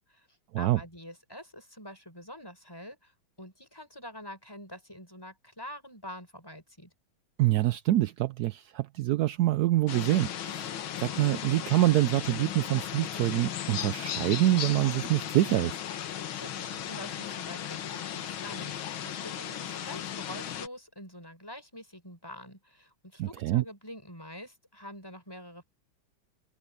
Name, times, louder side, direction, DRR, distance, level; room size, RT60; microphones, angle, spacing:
voice 1, 0.6-3.1 3.4-6.9 16.1-25.6, equal, 10° left, 6.8 m, -46 dB
voice 2, 7.4-10.7 11.0-15.8 23.2-23.6, right 15 dB, 80° right, 0.8 m, -26 dB
sound 1, 9.9-20.7, left 10 dB, 80° left, 2.0 m, -36 dB
open air
omnidirectional pair, 2.2 m